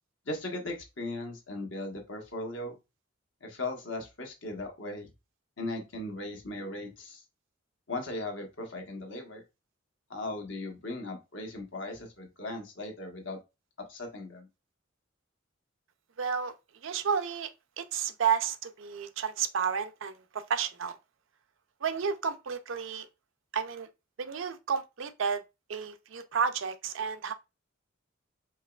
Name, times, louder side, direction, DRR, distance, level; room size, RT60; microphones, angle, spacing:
voice 1, 0.3-2.7 3.4-5.1 5.6-7.2 7.9-9.4 10.1-13.4 13.8-14.5, left 2 dB, 65° left, 1.2 m, -38 dB
voice 2, 16.2-16.5 16.8-17.5 17.8-21.0 21.8-23.1 23.5-23.9 24.2-25.4 25.7-27.3, right 6 dB, 70° right, 0.5 m, -31 dB
4.6 x 3.0 x 2.3 m
head